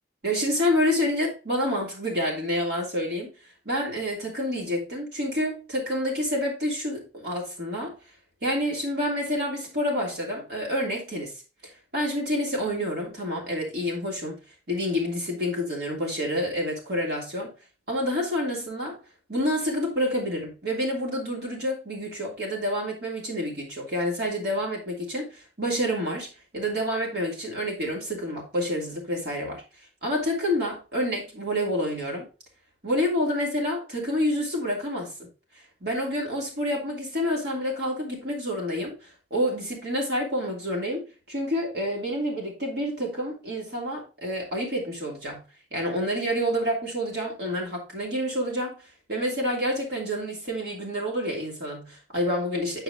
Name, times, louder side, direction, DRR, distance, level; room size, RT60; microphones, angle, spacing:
voice 1, 0.2-3.3 3.6-7.9 8.4-11.3 11.9-14.4 14.7-17.5 17.9-19.0 19.3-26.3 26.5-29.6 30.0-32.2 32.8-35.1 35.8-45.4 45.7-48.7 49.1-52.8, equal, 60° right, 3.0 m, -28 dB
9.3 x 4.9 x 3.6 m
head